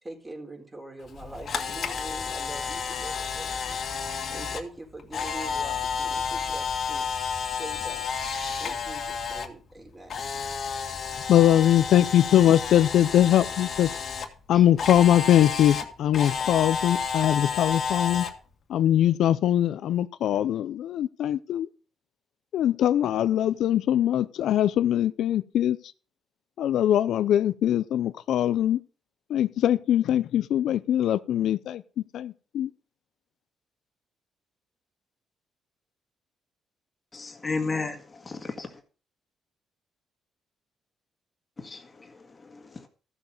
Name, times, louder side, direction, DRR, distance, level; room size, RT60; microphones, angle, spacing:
voice 1, 0.0-3.8 4.3-7.1 7.6-8.1 8.6-10.3, right 2 dB, 20° right, 3.9 m, -43 dB
Camera, 1.1-9.5 9.8-14.3 14.8-18.3, left 6 dB, 55° left, 1.9 m, -31 dB
voice 2, 11.3-13.9 14.5-18.3 18.7-21.7 22.5-25.8 26.6-28.8 29.3-31.8 32.1-32.7, left 11 dB, 75° left, 0.5 m, -22 dB
voice 3, 37.1-38.8 41.6-42.9, left 3 dB, 30° left, 1.9 m, -34 dB
14.0 x 7.0 x 5.3 m
cardioid pair, 90°, 0 cm